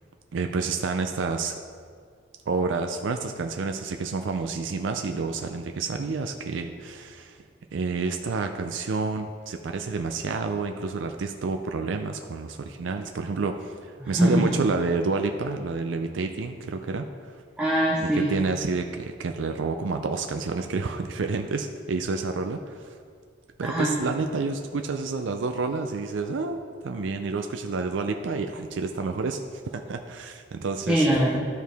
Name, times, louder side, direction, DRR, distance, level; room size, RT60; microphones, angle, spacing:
voice 1, 0.3-1.6 2.5-7.4 7.7-17.4 18.3-22.9 23.6-29.4 29.7-31.1, right 4 dB, 70° right, 5 dB, 0.4 m, -29 dB
voice 2, 14.0-14.6 17.6-18.2 23.6-23.9 30.9-31.4, right 1 dB, 5° right, -5 dB, 0.8 m, -22 dB
12.5 x 4.6 x 3.4 m, 2.2 s
head